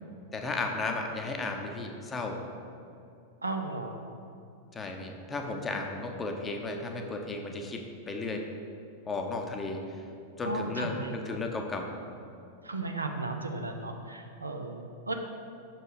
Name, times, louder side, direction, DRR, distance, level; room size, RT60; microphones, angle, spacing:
voice 1, 0.3-2.4 4.7-8.4 9.1-9.8 10.4-11.9, left 3 dB, 20° left, 3 dB, 0.7 m, -34 dB
voice 2, 3.4-4.0 10.4-11.4 12.6-15.1, right 2 dB, 80° right, 4 dB, 0.5 m, -35 dB
6.2 x 4.4 x 5.0 m, 2.5 s
figure-of-eight pair, 90°, 0 cm